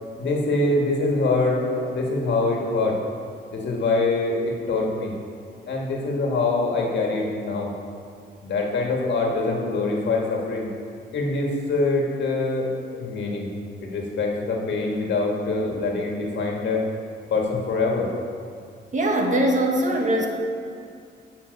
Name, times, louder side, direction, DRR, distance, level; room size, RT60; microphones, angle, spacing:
voice 1, 0.2-3.0 3.5-5.1 5.7-7.7 8.4-10.7 11.1-12.7 13.0-13.5 13.8-16.8 17.3-18.1, left 3 dB, 60° left, -1 dB, 2.0 m, -24 dB
voice 2, 18.9-20.3, right 1 dB, 40° right, 1 dB, 1.5 m, -21 dB
15.0 x 5.9 x 5.4 m, 2.3 s
cardioid pair, 125°, 20 cm